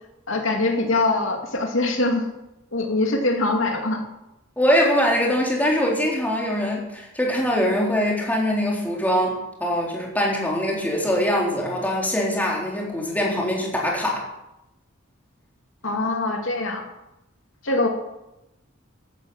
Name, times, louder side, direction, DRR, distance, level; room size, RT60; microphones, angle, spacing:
voice 1, 0.3-2.3 2.7-4.0 15.8-16.8 17.6-17.9, left 2 dB, 75° left, 3 dB, 2.6 m, -23 dB
voice 2, 4.6-14.3, equal, 10° left, -2 dB, 4.0 m, -23 dB
15.0 x 12.0 x 7.3 m, 0.92 s
head